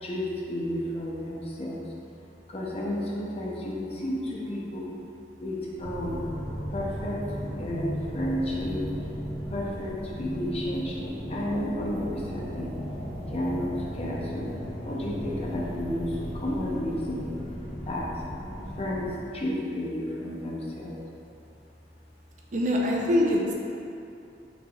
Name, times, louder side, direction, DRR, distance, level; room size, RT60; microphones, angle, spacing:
voice 1, 0.0-1.9 2.5-4.9 5.4-6.3 6.7-9.1 9.5-12.8 13.3-17.3 17.8-18.2 18.6-21.0, left 1 dB, 35° left, -3 dB, 0.6 m, -32 dB
sound 1, 5.8-19.1, equal, 60° left, 1.5 m, -36 dB
voice 2, 22.5-23.5, left 1 dB, 45° right, -2 dB, 0.5 m, -23 dB
6.1 x 3.3 x 2.3 m, 2.6 s
head